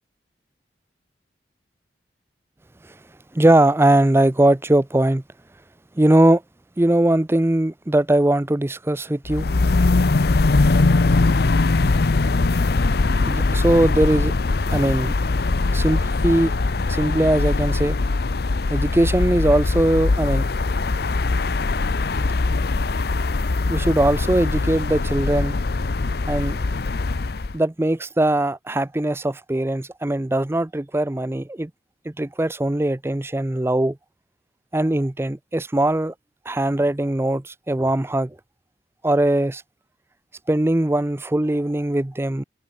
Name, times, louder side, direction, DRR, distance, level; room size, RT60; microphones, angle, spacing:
voice 1, 3.3-5.2 6.0-6.4 6.8-9.5 13.2-14.3 14.7-15.1 15.7-16.5 16.9-18.0 18.7-20.5 23.7-25.6 26.3-26.6 27.5-31.7 32.1-34.0 34.7-36.1 36.5-38.4 39.0-39.6 40.5-42.4, right 1 dB, 15° right, 0.5 m, -20 dB
sound 1, 9.3-27.6, left 3 dB, 60° left, 0.7 m, -21 dB
head